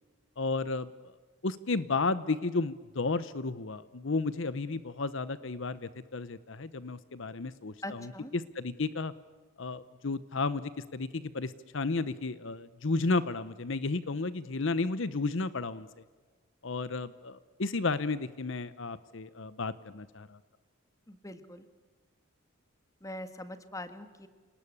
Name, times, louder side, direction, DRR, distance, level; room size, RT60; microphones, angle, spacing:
voice 1, 0.4-0.9 1.4-9.1 9.6-15.9 16.6-20.4, left 3 dB, 60° left, 15 dB, 0.8 m, -33 dB
voice 2, 7.8-8.3 21.1-21.7 23.0-24.3, left 1 dB, 15° left, 10 dB, 1.6 m, -42 dB
28.5 x 19.5 x 8.5 m, 1.4 s
head